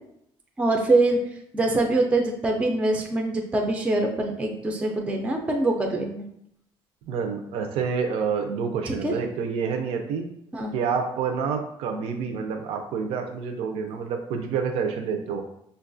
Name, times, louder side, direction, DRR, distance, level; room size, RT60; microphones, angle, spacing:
voice 1, 0.6-1.2 1.5-6.2 8.9-9.1 10.5-10.7, right 2 dB, 10° right, 2 dB, 0.3 m, -24 dB
voice 2, 7.1-10.3 10.7-15.4, right 6 dB, 80° right, 4 dB, 0.4 m, -28 dB
5.3 x 2.3 x 2.5 m, 0.74 s
cardioid pair, 165°, 10 cm